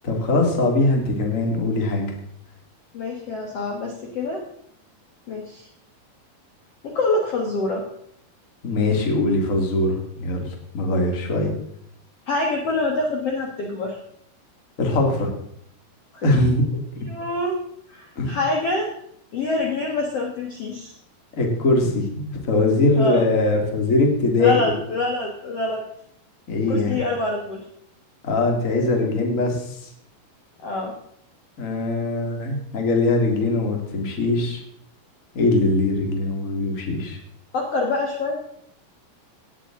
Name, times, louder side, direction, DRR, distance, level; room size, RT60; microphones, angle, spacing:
voice 1, 0.0-2.1 8.6-10.5 10.7-11.5 14.8-15.3 16.2-16.6 18.1-18.4 21.4-24.6 26.5-26.9 28.2-29.9 31.6-34.6 35.3-37.2, left 2 dB, 35° left, 2 dB, 1.2 m, -21 dB
voice 2, 2.9-4.4 5.3-5.6 6.8-7.8 12.3-14.0 16.1-16.2 17.0-17.6 17.9-18.9 19.3-20.9 23.0-23.2 24.4-25.8 26.7-27.6 30.6-30.9 37.5-38.4, left 2 dB, 75° left, 0 dB, 1.4 m, -25 dB
17.5 x 9.2 x 3.7 m, 0.69 s
omnidirectional pair, 5.1 m